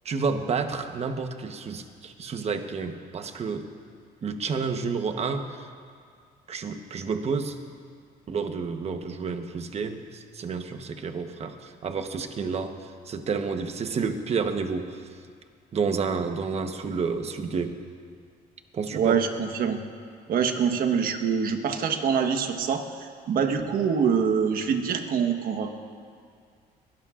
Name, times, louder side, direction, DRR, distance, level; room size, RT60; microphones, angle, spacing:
voice 1, 0.0-3.7 4.2-5.6 6.5-7.6 8.3-12.7 13.1-15.0 15.7-17.7 18.7-19.2 23.6-23.7, right 5 dB, 40° right, 7 dB, 1.0 m, -30 dB
voice 2, 18.9-19.8 20.3-25.7, right 6 dB, 60° right, 6 dB, 1.2 m, -25 dB
22.5 x 17.5 x 2.5 m, 2.2 s
cardioid pair, 110°, 17 cm